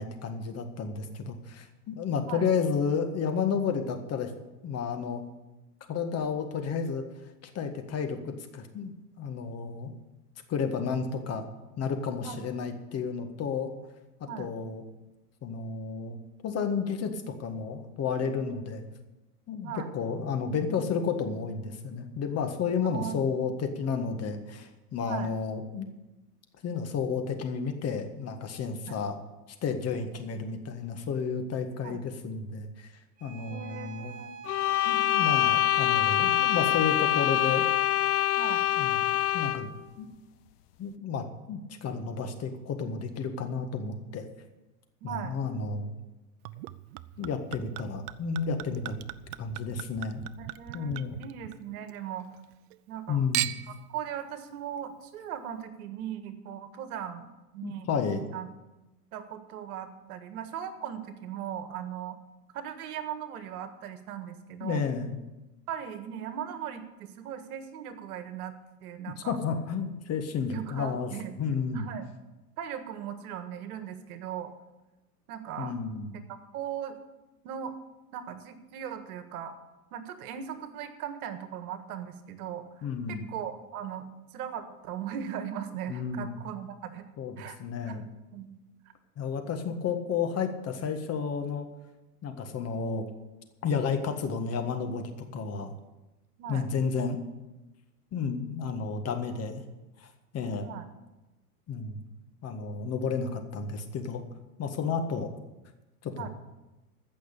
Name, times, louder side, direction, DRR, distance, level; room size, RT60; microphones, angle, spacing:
voice 1, 0.0-4.3 4.6-5.2 5.9-7.0 7.4-8.9 9.2-9.9 10.5-11.5 11.8-13.7 14.4-14.8 15.4-16.2 16.4-18.8 19.5-25.9 26.6-29.2 29.6-32.9 33.2-34.2 34.9-37.7 38.8-39.0 39.3-39.7 40.0-40.1 40.8-44.3 45.0-45.9 47.2-49.0 49.4-50.2 50.7-51.2 53.1-53.5 57.6-58.2 64.6-65.2 69.1-71.1 71.4-71.9 75.6-76.1 82.8-83.3 85.9-86.4 87.2-88.1 89.2-91.7 92.2-93.1 93.6-95.7 96.5-97.2 98.1-99.6 100.0-100.1 100.3-100.7 101.7-102.0 102.4-104.2 104.6-105.3 106.0-106.3, left 5 dB, 30° left, 6 dB, 1.7 m, -31 dB
voice 2, 22.8-23.2 25.0-25.3 28.8-29.0 31.8-32.0 33.4-34.3 38.4-38.6 45.0-45.4 50.4-52.3 52.9-53.2 53.7-57.9 58.3-58.5 59.1-62.2 62.5-64.8 65.7-69.4 70.5-71.3 71.7-72.1 72.6-74.5 75.3-75.7 76.3-77.0 77.4-77.8 78.1-79.5 79.9-84.1 84.3-87.1 87.4-87.6 87.9-88.0 88.3-88.6 96.4-96.7 100.6-100.9 106.1-106.3, right 9 dB, 65° right, 9 dB, 1.7 m, -38 dB
Bowed string instrument, 33.2-38.8, right 6 dB, 15° right, 2.9 m, -46 dB
sound 1, 34.5-39.7, left 13 dB, 70° left, 1.0 m, -25 dB
Chink clink / Liquid, 46.5-52.0 52.3-53.0 53.3-53.9 54.6-54.7, right 17 dB, 45° right, 0.6 m, -38 dB
15.0 x 6.5 x 8.4 m, 1.0 s
hypercardioid pair, 105°, 47 cm